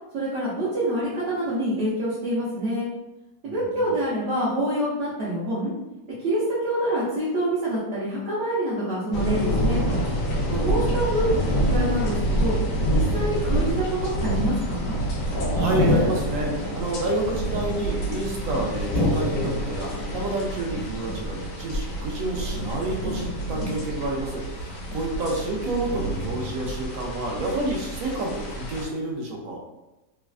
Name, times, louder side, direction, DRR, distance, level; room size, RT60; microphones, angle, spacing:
voice 1, 0.1-2.9 3.4-5.7 6.2-9.8 10.6-11.3 11.7-15.0, right 1 dB, 55° right, -10 dB, 1.0 m, -26 dB
voice 2, 3.4-3.9 10.5-10.9 15.5-29.6, right 2 dB, 75° right, -1 dB, 1.1 m, -29 dB
sound 1, 9.1-28.9, equal, 70° left, 1.0 m, -27 dB
3.2 x 2.3 x 2.4 m, 1.0 s
omnidirectional pair, 1.5 m